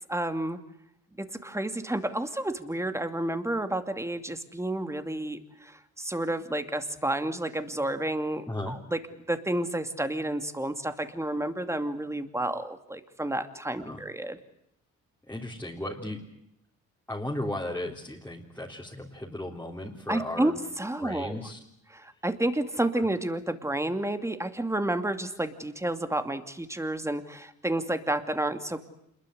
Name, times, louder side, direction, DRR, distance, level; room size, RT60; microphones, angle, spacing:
voice 1, 0.1-0.6 1.2-9.0 9.3-14.4 20.1-21.4 21.9-28.8, right 1 dB, 10° right, 8 dB, 2.4 m, -30 dB
voice 2, 8.5-8.8 13.8-14.0 15.3-16.3 17.1-20.6 21.0-21.6 22.9-23.1, left 1 dB, 5° left, -3 dB, 3.7 m, -35 dB
27.0 x 21.5 x 8.0 m, 0.79 s
cardioid pair, 90°, 30 cm